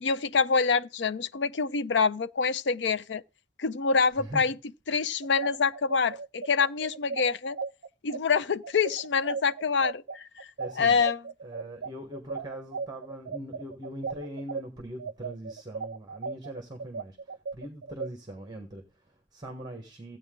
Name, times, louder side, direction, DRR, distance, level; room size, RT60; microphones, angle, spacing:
voice 1, 0.0-3.2 3.6-4.5 4.9-7.6 8.0-10.5 10.8-11.2, left 5 dB, 70° left, 0.5 m, -26 dB
voice 2, 4.1-4.5 10.6-11.0 11.4-20.2, right 1 dB, 25° right, 1.4 m, -41 dB
sound 1, 5.2-14.6 15.0-18.1, right 5 dB, 70° right, 0.5 m, -36 dB
15.0 x 8.5 x 3.8 m
head